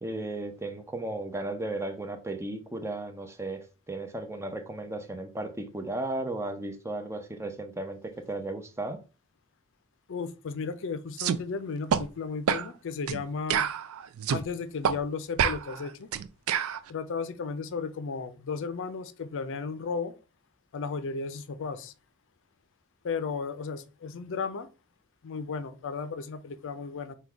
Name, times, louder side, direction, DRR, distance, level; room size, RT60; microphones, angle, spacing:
voice 1, 0.0-9.0, right 2 dB, 15° right, 0.5 m, -35 dB
voice 2, 10.1-13.7 14.3-16.1 16.9-20.1 20.7-21.9 23.0-24.7 25.2-27.1, left 5 dB, 60° left, 0.4 m, -34 dB
sound 1, 11.2-11.4 11.9-12.0 12.5-12.7 13.1-13.2 13.5-14.4 14.8-15.0 15.4-16.8, right 8 dB, 75° right, 0.4 m, -27 dB
3.8 x 2.3 x 4.4 m
head